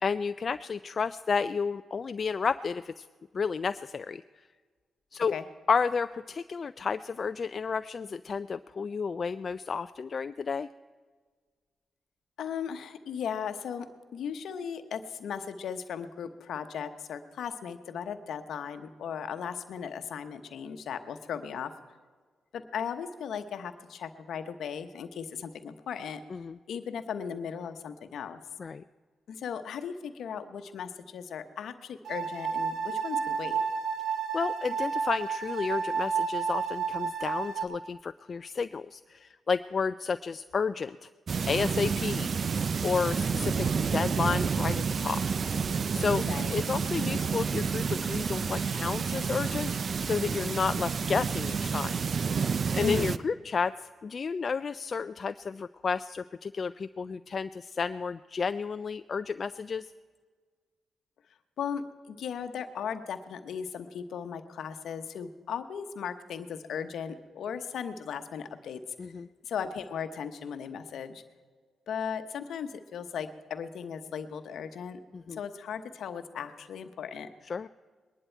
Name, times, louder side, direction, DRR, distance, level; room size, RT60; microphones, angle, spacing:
voice 1, 0.0-3.1 3.3-4.2 5.1-5.4 5.7-10.7 26.3-26.6 28.6-28.8 34.3-41.1 41.5-42.3 42.8-45.2 45.9-46.2 46.5-49.7 50.0-51.9 52.7-59.9 69.0-69.3 75.1-75.4 77.4-77.7, left 5 dB, 50° left, 12 dB, 0.3 m, -31 dB
voice 2, 12.4-13.9 14.1-21.7 22.5-26.2 26.7-28.4 29.3-33.6 46.3-46.6 52.8-53.2 61.6-68.8 69.4-71.2 71.9-75.0 75.3-77.3, left 7 dB, 70° left, 9 dB, 0.9 m, -37 dB
sound 1, 32.0-37.6, right 6 dB, 70° right, 1.2 m, -31 dB
sound 2, 41.3-53.2, right 5 dB, 55° right, 0.4 m, -29 dB
21.0 x 11.0 x 4.5 m, 1.5 s
supercardioid pair, 45°, 0 cm